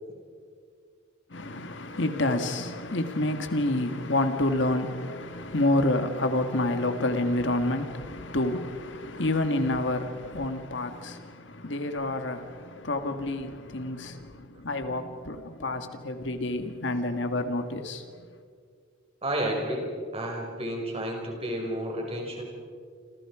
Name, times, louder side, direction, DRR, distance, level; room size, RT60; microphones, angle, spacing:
voice 1, 1.3-18.3, left 1 dB, 60° left, 1.7 m, -28 dB
voice 2, 19.2-22.4, right 1 dB, 30° right, 5.6 m, -31 dB
28.5 x 27.0 x 5.0 m
head